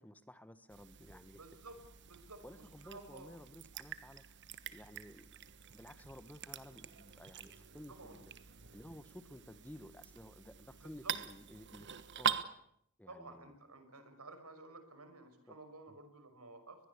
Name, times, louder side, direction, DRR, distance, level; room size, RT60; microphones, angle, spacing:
voice 1, 0.0-1.4 2.4-4.2 4.7-8.3 8.7-11.9 12.1-12.4 13.0-13.5 15.5-15.6 15.9-16.0, equal, 5° left, 12 dB, 1.2 m, -54 dB
sound 1, 0.7-12.5, right 8 dB, 55° right, 1.3 m, -44 dB
voice 2, 1.4-1.8 2.0-3.3 7.9-8.2 10.8-11.1 13.1-16.8, right 2 dB, 85° right, 9 dB, 5.7 m, -53 dB
23.0 x 21.5 x 8.3 m, 0.72 s
head